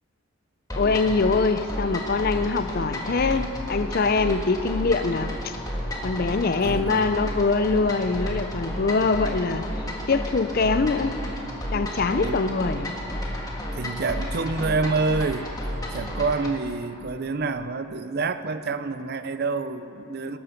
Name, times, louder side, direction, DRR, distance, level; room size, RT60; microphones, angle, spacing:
sound 1, 0.7-16.6, equal, 15° left, 1.5 m, -32 dB
voice 1, 0.8-5.5 6.0-11.2 11.7-12.9, left 4 dB, 45° left, 11 dB, 0.4 m, -24 dB
voice 2, 6.5-7.1 12.1-12.4 13.7-15.5 15.9-20.4, right 3 dB, 45° right, 11 dB, 0.5 m, -27 dB
19.0 x 8.7 x 5.8 m, 3.0 s
head